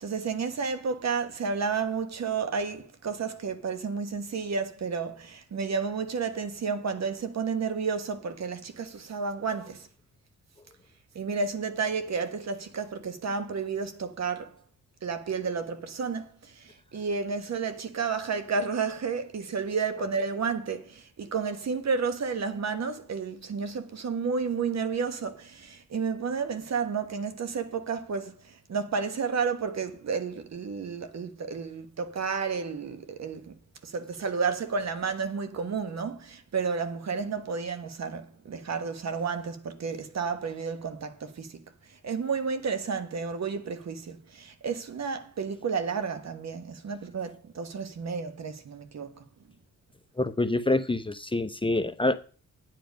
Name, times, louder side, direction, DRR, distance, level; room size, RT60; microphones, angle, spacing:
voice 1, 0.0-9.9 11.1-14.6 15.0-33.5 33.8-41.6 42.0-49.3, right 5 dB, 55° right, 1.3 m, -31 dB
voice 2, 50.2-52.2, left 2 dB, 15° left, 0.7 m, -26 dB
10.0 x 7.5 x 5.3 m
cardioid pair, 75°, 32 cm